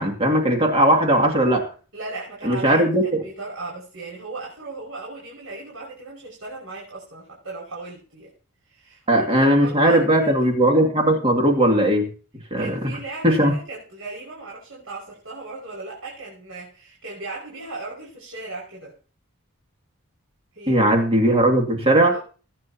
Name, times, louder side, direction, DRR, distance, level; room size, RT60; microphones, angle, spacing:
voice 1, 0.0-1.6 2.4-3.2 9.1-12.1 12.5-12.7 13.2-13.5 20.7-22.1, right 1 dB, 25° right, 2 dB, 2.5 m, -18 dB
voice 2, 1.9-8.3 8.7-10.3 12.6-19.0 20.5-20.8 22.1-22.2, right 2 dB, 70° right, -4 dB, 6.0 m, -37 dB
22.5 x 9.5 x 2.9 m, 0.38 s
head